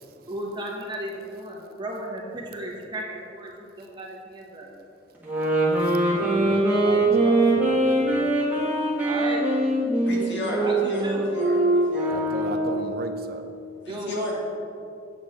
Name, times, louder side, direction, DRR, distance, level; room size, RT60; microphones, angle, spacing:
voice 1, 0.3-3.5 3.8-4.7 9.0-9.4 10.6-11.3 13.8-14.4, right 1 dB, 25° right, -2 dB, 1.3 m, -35 dB
sound 1, 5.2-12.8, right 1 dB, 10° right, 1.6 m, -22 dB
voice 2, 6.1-8.3 12.1-13.4, right 3 dB, 50° right, 6 dB, 0.5 m, -36 dB
voice 3, 10.1-11.6 11.9-12.2 13.8-14.4, left 1 dB, 70° left, -4 dB, 2.0 m, -32 dB
8.3 x 7.2 x 4.3 m, 2.5 s
head